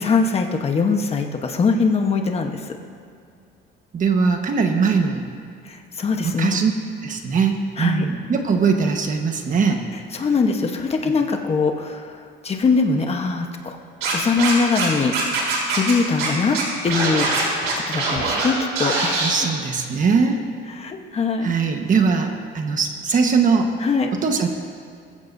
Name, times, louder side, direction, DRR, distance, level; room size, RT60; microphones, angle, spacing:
voice 1, 0.0-2.6 5.7-6.6 7.8-8.0 10.1-12.0 12.4-13.8 14.1-15.1 15.7-16.6 16.8-17.3 17.7-19.3 20.7-21.5 23.8-24.1, left 4 dB, 30° left, 4 dB, 1.1 m, -22 dB
voice 2, 3.9-5.2 6.2-6.7 7.0-9.8 19.2-20.4 21.4-23.7 24.2-24.5, right 5 dB, 40° right, 4 dB, 1.4 m, -20 dB
Scratching (performance technique), 14.0-14.9 15.1-15.9 16.2-16.3 16.5-18.5 18.8-19.3, right 4 dB, 90° right, 3.7 m, -22 dB
20.0 x 15.0 x 2.7 m, 2.2 s
cardioid pair, 135°, 21 cm